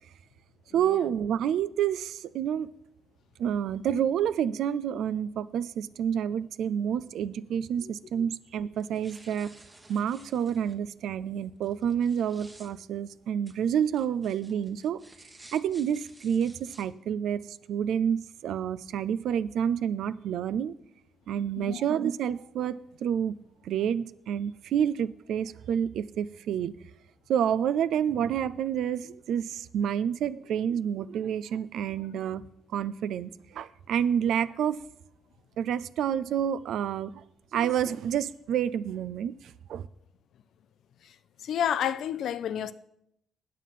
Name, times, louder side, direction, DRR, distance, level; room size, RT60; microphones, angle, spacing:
voice 1, 0.7-2.7 3.4-9.5 9.9-15.0 15.5-20.7 21.3-23.3 23.6-26.7 27.3-32.4 32.7-34.8 35.6-37.2 37.5-39.9, right 9 dB, 75° right, 0.4 m, -29 dB
sound 1, 8.8-10.8 11.6-12.7 13.5-16.8, right 2 dB, 20° right, 1.2 m, -54 dB
voice 2, 41.4-42.7, left 9 dB, 70° left, 0.5 m, -30 dB
9.1 x 7.5 x 5.7 m
cardioid pair, 90°, 0 cm